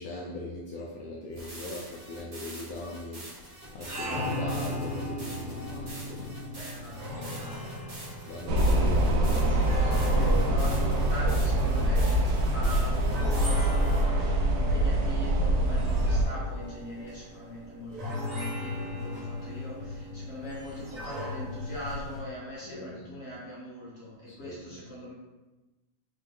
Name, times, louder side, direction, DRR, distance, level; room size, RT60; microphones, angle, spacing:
voice 1, 0.0-3.4 3.7-6.4 8.3-9.1 22.7-23.2 24.3-24.8, left 2 dB, 75° left, -2 dB, 0.8 m, -40 dB
sound 1, 1.3-14.0, right 1 dB, 25° right, 1.1 m, -46 dB
sound 2, 3.6-22.2, left 1 dB, 45° right, 1.6 m, -38 dB
voice 2, 6.5-8.1 8.5-25.1, equal, 35° left, -6 dB, 1.4 m, -42 dB
sound 3, 8.5-16.2, right 1 dB, 75° right, 1.3 m, -24 dB
3.6 x 3.5 x 3.9 m, 1.1 s
omnidirectional pair, 2.1 m